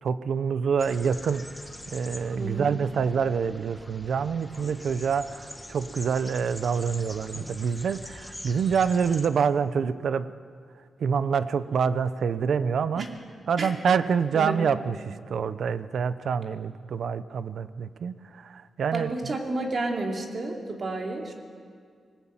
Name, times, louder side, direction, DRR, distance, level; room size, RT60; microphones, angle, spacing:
voice 1, 0.0-1.5 1.9-10.3 11.0-13.1 13.5-19.3, right 6 dB, 60° right, 14 dB, 0.7 m, -26 dB
sound 1, 0.8-9.3, left 1 dB, 5° left, 1.3 m, -43 dB
voice 2, 2.4-2.7 13.0-13.1 13.6-13.7 14.3-14.6 18.9-21.3, right 2 dB, 40° right, 2 dB, 2.8 m, -31 dB
21.0 x 18.5 x 8.9 m, 2.1 s
wide cardioid pair, 155°, 0 cm